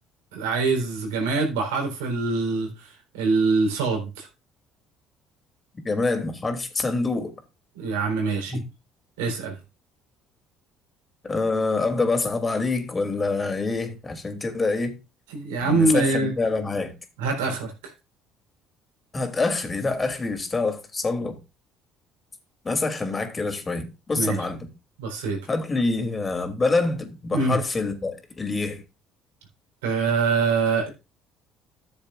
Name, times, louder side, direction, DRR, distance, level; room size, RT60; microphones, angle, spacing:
voice 1, 0.3-4.3 7.8-8.6 9.2-9.6 15.3-16.3 17.2-17.9 24.1-24.4 25.0-25.4 27.3-27.6 29.8-30.9, right 3 dB, 85° right, 3.9 m, -24 dB
voice 2, 5.8-7.3 8.5-8.7 11.2-15.0 15.6-16.9 19.1-21.4 22.6-24.7 25.5-28.8, left 3 dB, 30° left, 2.9 m, -26 dB
14.0 x 7.2 x 2.5 m
hypercardioid pair, 65°, 0 cm